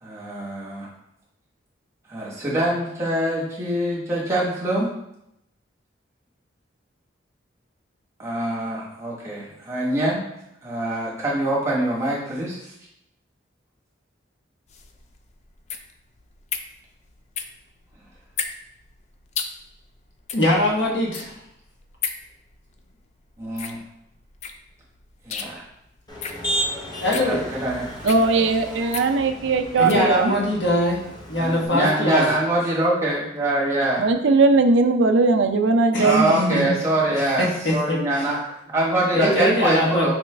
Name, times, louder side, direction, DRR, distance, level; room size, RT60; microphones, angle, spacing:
voice 1, 0.0-0.9 2.1-4.9 8.2-10.2 10.6-12.7 23.4-23.8 25.2-25.6 27.2-27.8 29.8-30.0 31.4-34.0 36.0-40.1, right 1 dB, 15° right, -6 dB, 1.1 m, -24 dB
sound 1, 14.7-30.1, left 6 dB, 35° left, 0.3 m, -36 dB
voice 2, 20.3-21.3 27.0-27.4 29.8-31.0 31.3-32.3 35.9-36.2 36.5-36.6 37.1-37.5 37.9-38.0 39.1-40.1, left 1 dB, 65° left, -3 dB, 1.2 m, -21 dB
Motor vehicle (road), 26.1-31.7, right 1 dB, 20° left, 0.7 m, -33 dB
voice 3, 28.1-30.4 34.0-36.7, right 3 dB, 65° right, 6 dB, 0.4 m, -19 dB
5.1 x 3.1 x 3.3 m, 0.81 s
head